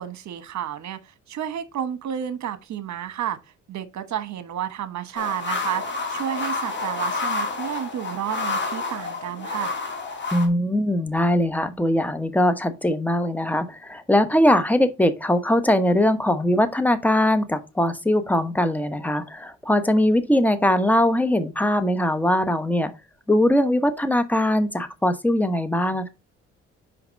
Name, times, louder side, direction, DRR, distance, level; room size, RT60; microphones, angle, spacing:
voice 1, 0.0-3.4 3.7-9.7, right 10 dB, 65° right, 1.2 m, -31 dB
sound 1, 5.1-10.5, left 3 dB, 35° left, 2.4 m, -29 dB
voice 2, 10.3-22.9 23.3-26.1, left 1 dB, 5° left, 1.0 m, -21 dB
5.8 x 5.0 x 5.1 m
cardioid pair, 90°, 30 cm